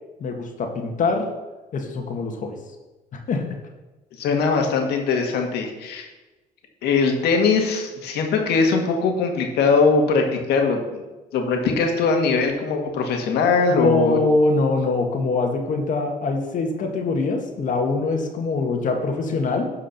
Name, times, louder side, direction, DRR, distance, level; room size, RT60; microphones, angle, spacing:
voice 1, 0.2-1.3 1.7-2.6 3.1-3.5 13.7-19.7, left 3 dB, 50° left, 3 dB, 1.6 m, -23 dB
voice 2, 4.2-6.1 6.8-11.0 11.3-14.2, left 4 dB, 75° left, 3 dB, 1.9 m, -21 dB
12.0 x 4.9 x 5.8 m, 1.1 s
cardioid pair, 110°, 17 cm